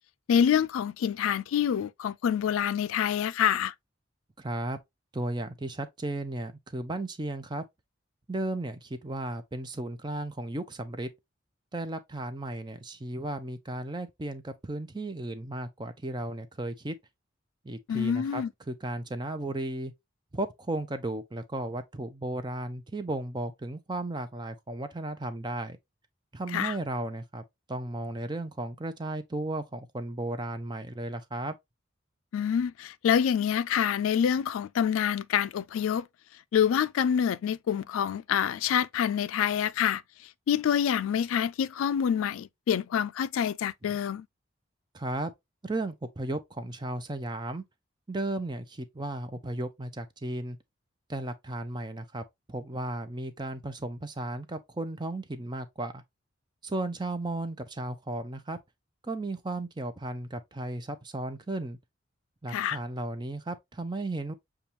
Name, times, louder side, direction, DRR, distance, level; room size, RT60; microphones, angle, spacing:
voice 1, 0.3-3.7 17.9-18.5 26.5-26.7 32.3-36.0 36.5-40.0 40.5-44.2 62.5-62.8, left 8 dB, 85° left, 0.3 m, -26 dB
voice 2, 4.4-4.8 5.1-7.6 8.3-11.1 11.7-16.9 17.6-19.9 20.3-25.8 26.3-31.6 44.9-45.3 45.6-47.6 48.1-50.6 51.1-52.2 52.5-56.0 56.6-58.6 59.0-61.8 62.4-64.3, right 2 dB, 20° right, 0.5 m, -35 dB
6.8 x 2.3 x 2.8 m
head